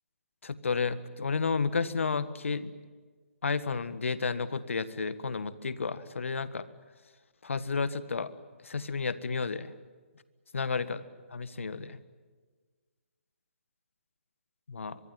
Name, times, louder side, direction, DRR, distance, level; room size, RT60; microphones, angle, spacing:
voice 1, 0.4-2.7 3.4-6.6 7.4-8.3 8.6-9.7 10.5-11.0 11.3-12.0 14.7-15.0, left 4 dB, 70° left, 15 dB, 1.5 m, -31 dB
24.0 x 23.0 x 9.4 m, 1.5 s
figure-of-eight pair, 145°, 7 cm